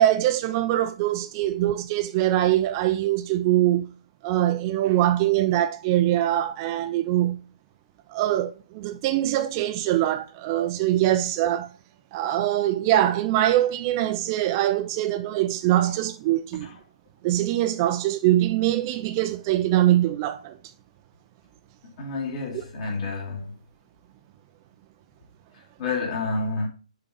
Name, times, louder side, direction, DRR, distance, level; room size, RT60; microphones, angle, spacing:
voice 1, 0.0-3.9 4.2-7.4 8.1-11.7 12.1-16.7 17.2-20.6, right 13 dB, 30° right, 0.4 m, -23 dB
voice 2, 22.0-23.5 25.8-26.7, left 3 dB, 45° left, 2.7 m, -29 dB
6.7 x 3.8 x 5.1 m
figure-of-eight pair, 135°, 4 cm